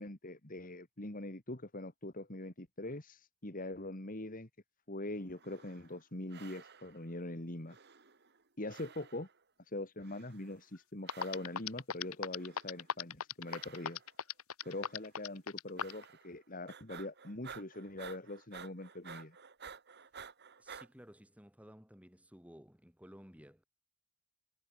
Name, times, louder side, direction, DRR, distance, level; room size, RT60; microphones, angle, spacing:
voice 1, 0.0-4.5 4.9-7.8 8.6-9.3 9.7-14.0 14.7-19.4, left 1 dB, 40° left, 2.4 m, -43 dB
sound 1, 5.3-6.0 6.3-7.1 7.7-8.4 8.7-9.4 10.0-10.6 11.0-11.7 12.3-12.9 13.4-14.2 14.6-15.1 15.8-16.4 16.7-20.9, right 6 dB, 50° right, 2.2 m, -53 dB
sound 2, 10.8-10.9 11.1-16.0, left 7 dB, 80° left, 1.4 m, -37 dB
voice 2, 20.6-23.7, equal, 5° right, 5.7 m, -56 dB
head